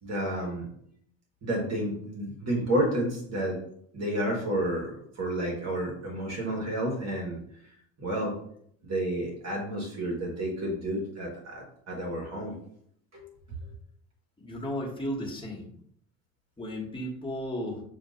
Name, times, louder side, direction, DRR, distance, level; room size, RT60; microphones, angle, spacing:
voice 1, 0.0-0.7 1.4-3.6 3.9-7.4 8.0-8.3 8.8-12.5 13.1-13.3, right 1 dB, 45° right, -1 dB, 1.6 m, -30 dB
voice 2, 14.4-15.7 16.6-17.8, equal, 15° left, -1 dB, 1.4 m, -34 dB
6.7 x 2.5 x 2.6 m, 0.66 s
supercardioid pair, 90°, 37 cm